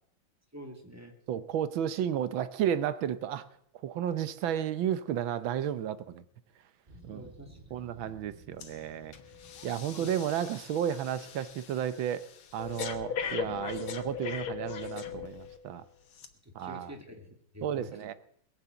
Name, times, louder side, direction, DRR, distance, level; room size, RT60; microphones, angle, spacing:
voice 1, 0.5-1.1 7.1-7.6 9.9-10.1 16.4-17.9, equal, 10° right, 3 dB, 2.2 m, -46 dB
voice 2, 1.3-3.5 3.8-6.2 7.0-7.2 7.7-9.1 9.6-12.2 12.5-15.8 16.5-16.9 17.6-18.1, right 9 dB, 80° right, 13 dB, 1.6 m, -32 dB
sound 1, 6.9-11.1, right 1 dB, 30° right, 1.9 m, -56 dB
Breathing, 8.6-8.8 9.1-15.6 16.1-16.3, left 8 dB, 85° left, 2.0 m, -39 dB
21.5 x 7.3 x 8.0 m, 0.66 s
omnidirectional pair, 2.2 m